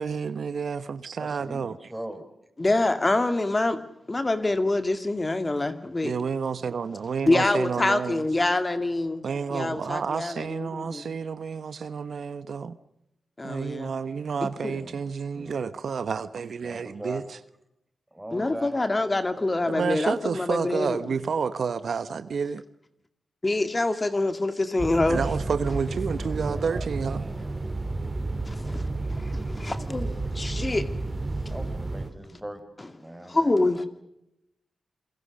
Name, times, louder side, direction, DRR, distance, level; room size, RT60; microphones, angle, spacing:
voice 1, 0.0-1.7 6.0-8.2 9.2-12.8 13.4-17.4 19.7-22.6 25.1-27.2, right 6 dB, 70° right, 1.0 m, -30 dB
voice 2, 1.2-2.3 7.4-7.6 14.6-15.0 15.3-15.7 16.6-17.2 18.1-19.8 26.1-27.5 28.9-29.1 31.5-33.9, right 1 dB, 10° right, 5.2 m, -42 dB
voice 3, 2.6-3.8 4.1-6.1 7.3-11.1 13.4-13.9 14.6-14.7 18.3-21.0 23.4-25.2 28.5-30.9 33.3-33.8, left 2 dB, 30° left, 2.2 m, -26 dB
sound 1, 24.8-32.1, right 2 dB, 30° right, 3.8 m, -31 dB
27.5 x 23.0 x 6.5 m
cardioid pair, 45°, 0 cm